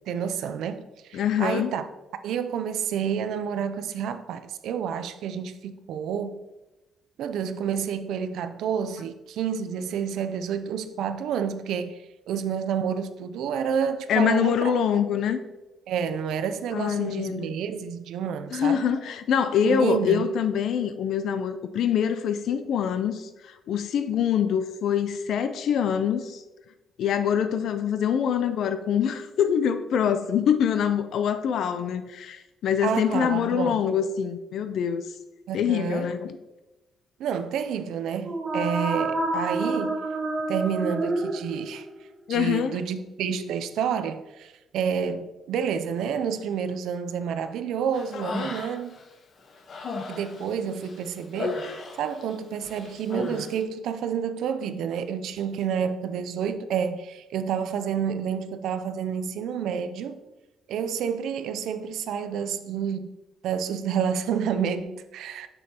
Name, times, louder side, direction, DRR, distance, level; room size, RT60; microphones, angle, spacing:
voice 1, 0.0-1.8 2.2-6.4 7.2-14.7 15.9-18.8 19.6-20.3 32.8-33.8 35.5-36.1 37.2-40.0 40.5-41.9 42.3-48.9 50.1-60.2 60.7-63.1 63.4-65.5, right 7 dB, 80° right, 0.4 m, -29 dB
voice 2, 1.1-1.7 14.1-15.4 16.7-17.5 18.5-26.4 27.0-35.0 35.5-36.4 42.3-42.8 48.1-48.2, left 8 dB, 70° left, 0.4 m, -25 dB
sound 1, 38.1-42.0, right 2 dB, 40° right, 0.8 m, -28 dB
Human voice, 47.9-49.0 49.4-52.3 52.6-53.5, left 3 dB, 55° left, 1.0 m, -35 dB
6.2 x 6.1 x 2.8 m
cardioid pair, 90°, 0 cm